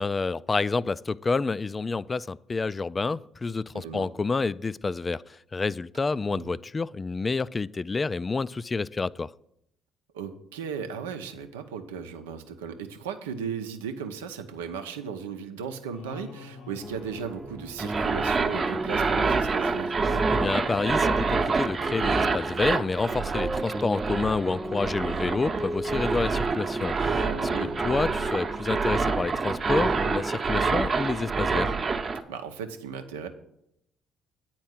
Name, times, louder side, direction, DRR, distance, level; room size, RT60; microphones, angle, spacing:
voice 1, 0.0-9.3 20.1-27.2 27.6-31.8, left 4 dB, 30° left, 0.3 m, -29 dB
voice 2, 3.7-4.1 6.3-6.6 10.1-20.0 27.1-27.8 32.3-33.3, right 7 dB, 90° right, 0.7 m, -36 dB
sound 1, 15.9-18.4, left 5 dB, 70° left, 0.9 m, -47 dB
sound 2, 16.8-30.3, right 1 dB, 15° right, 0.7 m, -35 dB
sound 3, 17.8-32.2, right 4 dB, 40° right, 0.9 m, -27 dB
9.5 x 4.4 x 7.4 m
hypercardioid pair, 55°, 0 cm